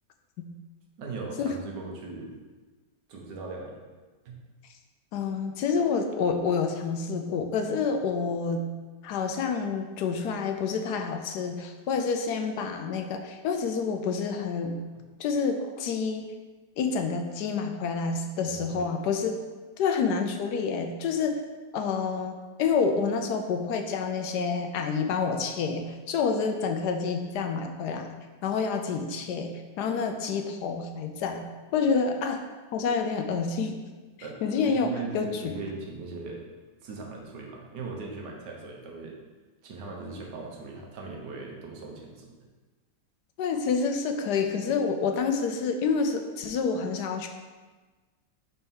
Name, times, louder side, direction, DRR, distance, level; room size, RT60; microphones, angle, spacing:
voice 1, 1.0-2.3 3.1-3.9 4.2-4.4 18.4-18.9 34.2-34.4 34.6-36.4 36.8-39.2 39.6-42.3, right 3 dB, 80° right, 0 dB, 1.6 m, -39 dB
voice 2, 5.1-8.7 9.0-14.8 15.2-16.2 16.8-19.4 19.8-21.4 21.7-28.2 28.4-29.5 29.8-31.4 31.7-32.4 32.7-33.8 34.4-35.5 43.4-47.3, left 5 dB, 75° left, 5 dB, 1.1 m, -28 dB
4.4 x 4.4 x 5.4 m, 1.3 s
omnidirectional pair, 1.9 m